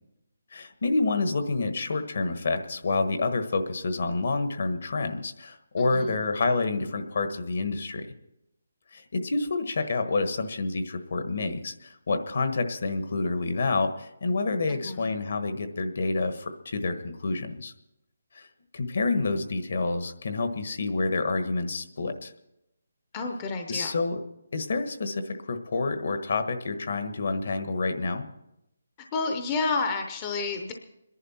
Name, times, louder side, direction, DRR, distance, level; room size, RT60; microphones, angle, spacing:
voice 1, 0.5-8.1 8.9-17.7 18.3-18.5 18.7-22.3 23.7-24.2 24.5-28.3, left 3 dB, 55° left, 8 dB, 1.3 m, -28 dB
voice 2, 5.8-6.1 14.7-15.1 23.1-23.9 29.1-30.7, left 4 dB, 15° left, 3 dB, 0.7 m, -30 dB
24.5 x 11.0 x 4.3 m, 0.86 s
hypercardioid pair, 175°, 0 cm